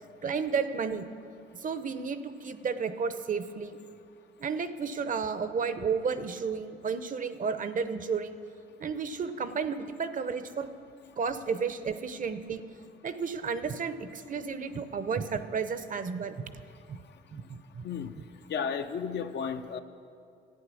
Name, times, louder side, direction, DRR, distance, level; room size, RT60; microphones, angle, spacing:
voice 1, 0.2-1.0 1.5-3.8 4.4-8.3 8.8-10.7 11.2-12.6 13.0-16.4 16.9-17.0 17.3-17.8, right 5 dB, 40° right, 11 dB, 0.7 m, -32 dB
voice 2, 18.5-19.8, left 6 dB, 60° left, 8 dB, 0.7 m, -33 dB
13.5 x 8.8 x 6.2 m, 2.4 s
cardioid pair, 90°, 20 cm